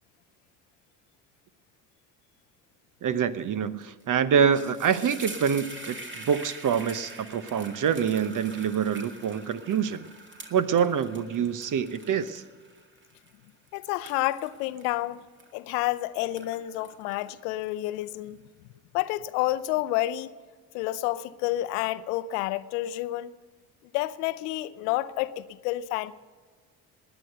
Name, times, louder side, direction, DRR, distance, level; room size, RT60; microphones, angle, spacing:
voice 1, 3.0-10.1 10.5-12.4, right 7 dB, 40° right, 0.9 m, -26 dB
sound 1, 3.8-4.0 4.3-15.9 16.2-18.1, right 2 dB, 25° right, 2.1 m, -45 dB
voice 2, 13.7-15.2 15.5-18.4 18.9-20.3 20.7-23.3 23.9-26.1, left 16 dB, 75° left, 0.7 m, -29 dB
19.5 x 10.0 x 6.7 m
hypercardioid pair, 55°, 46 cm